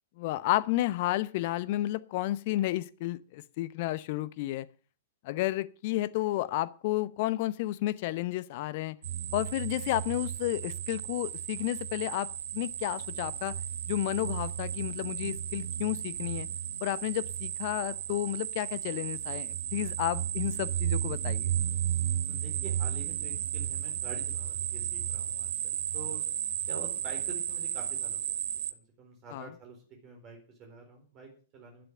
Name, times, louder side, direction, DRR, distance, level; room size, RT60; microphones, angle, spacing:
voice 1, 0.2-4.7 5.2-9.0 9.3-13.5 13.9-16.5 16.8-21.5 29.3-29.5, left 16 dB, 45° left, 17 dB, 0.8 m, -32 dB
sound 1, 9.0-28.7, right 10 dB, 55° right, 1.1 m, -34 dB
voice 2, 22.3-26.2 26.7-31.9, right 4 dB, 30° right, 2 dB, 4.4 m, -47 dB
11.5 x 11.0 x 6.7 m, 0.39 s
figure-of-eight pair, 105°, 0 cm